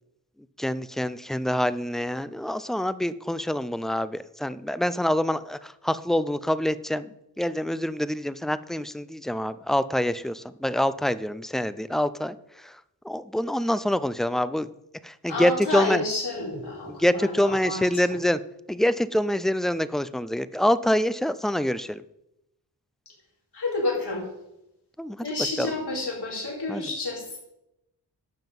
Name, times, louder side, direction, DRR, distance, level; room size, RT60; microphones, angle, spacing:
voice 1, 0.6-7.1 7.4-12.3 12.6-12.7 13.0-14.7 15.0-16.0 16.9-18.4 18.7-22.0 25.0-25.2 25.6-25.7 26.7-26.8, left 1 dB, ahead, 15 dB, 0.4 m, -26 dB
voice 2, 15.3-18.2 23.5-24.2 25.2-27.4, left 2 dB, 65° left, -4 dB, 4.8 m, -30 dB
12.0 x 7.4 x 5.4 m, 0.86 s
cardioid pair, 70°, 42 cm